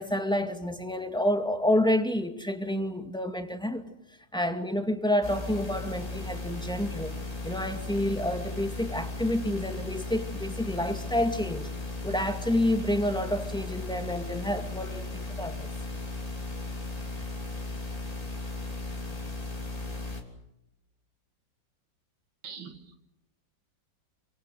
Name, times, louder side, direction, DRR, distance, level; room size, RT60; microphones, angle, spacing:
voice 1, 0.0-3.9 4.3-7.1 7.4-11.7 12.0-15.7, left 1 dB, ahead, 6 dB, 2.0 m, -29 dB
sound 1, 5.2-20.2, left 2 dB, 20° left, 3.2 m, -36 dB
voice 2, 22.4-23.0, right 6 dB, 80° right, 7 dB, 2.7 m, -43 dB
28.0 x 25.5 x 6.4 m, 0.86 s
omnidirectional pair, 2.1 m